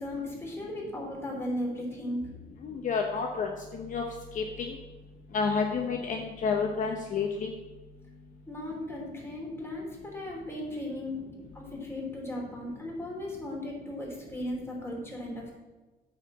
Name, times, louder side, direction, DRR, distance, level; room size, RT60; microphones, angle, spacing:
voice 1, 0.0-2.3 8.5-11.2 11.5-15.5, left 1 dB, 15° left, -2 dB, 3.2 m, -36 dB
voice 2, 2.6-4.0 4.3-4.7 5.3-7.5, left 5 dB, 50° left, 3 dB, 0.9 m, -30 dB
8.8 x 4.7 x 7.3 m, 1.2 s
cardioid pair, 110°, 17 cm